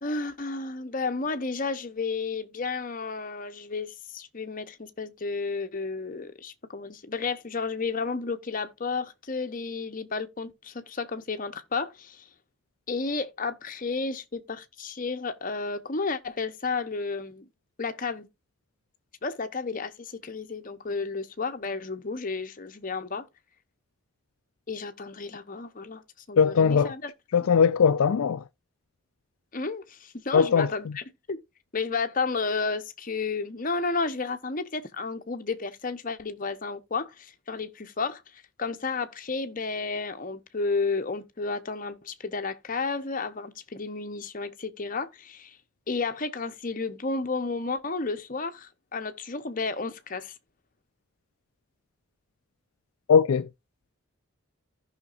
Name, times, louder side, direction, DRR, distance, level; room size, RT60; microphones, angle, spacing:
voice 1, 0.0-12.3 12.9-17.4 17.8-18.3 19.2-23.3 24.7-26.0 26.3-27.1 29.5-31.4 31.7-38.2 38.6-45.6 45.9-50.3, left 4 dB, 40° left, 0.8 m, -32 dB
voice 2, 26.4-26.9 27.3-28.4 30.3-30.9 53.1-53.5, left 6 dB, 75° left, 0.4 m, -20 dB
15.0 x 5.8 x 2.5 m
head